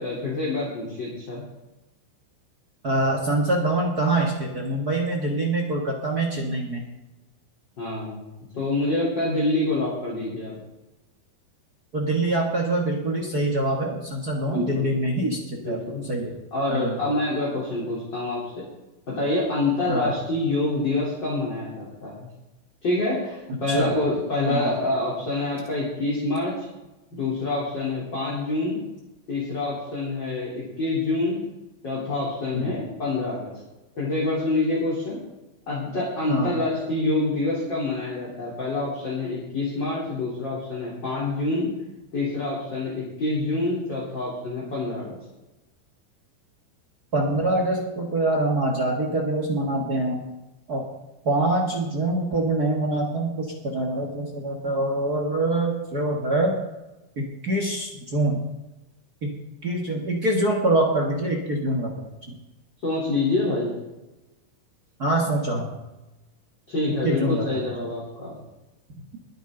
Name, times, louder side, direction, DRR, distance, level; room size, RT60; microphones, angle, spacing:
voice 1, 0.0-1.4 7.8-8.2 8.5-10.6 14.5-14.9 15.6-16.1 16.5-18.6 19.1-22.3 22.8-26.5 27.1-28.8 29.3-31.4 31.8-33.5 34.0-35.2 35.7-41.7 42.1-45.2 62.8-63.7 66.7-68.3, left 2 dB, 30° left, -6 dB, 3.8 m, -26 dB
voice 2, 2.8-6.8 11.9-16.3 16.7-17.0 19.9-20.1 23.7-23.9 24.5-24.7 32.5-32.7 36.3-36.5 47.1-50.2 50.7-50.8 51.2-56.5 57.2-58.4 59.2-59.3 59.6-62.4 65.0-65.7 67.0-67.6, right 2 dB, 50° right, 1 dB, 1.1 m, -25 dB
21.5 x 9.5 x 3.9 m, 1.0 s
omnidirectional pair, 4.3 m